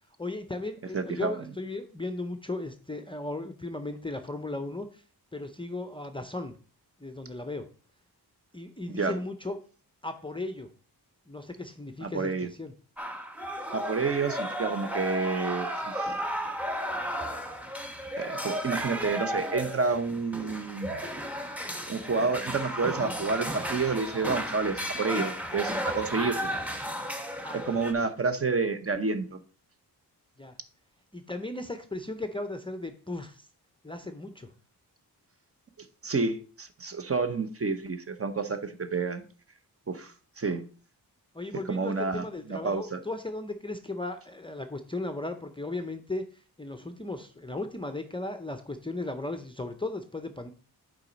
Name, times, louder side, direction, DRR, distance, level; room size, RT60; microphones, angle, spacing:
voice 1, 0.2-5.0 5.3-6.5 7.0-7.7 8.5-9.6 10.0-10.7 11.3-12.7 27.4-28.1 30.4-30.6 31.1-33.5 33.8-34.5 41.3-50.5, left 2 dB, 15° left, 0.6 m, -36 dB
voice 2, 0.9-1.5 8.9-9.2 12.0-12.5 13.7-16.2 18.2-21.0 21.9-26.5 27.5-29.4 35.8-39.2 39.9-40.7 41.7-43.0, right 4 dB, 35° right, 0.8 m, -29 dB
sound 1, 13.0-27.9, equal, 5° right, 1.0 m, -34 dB
8.8 x 5.2 x 4.0 m
wide cardioid pair, 125°, 40 cm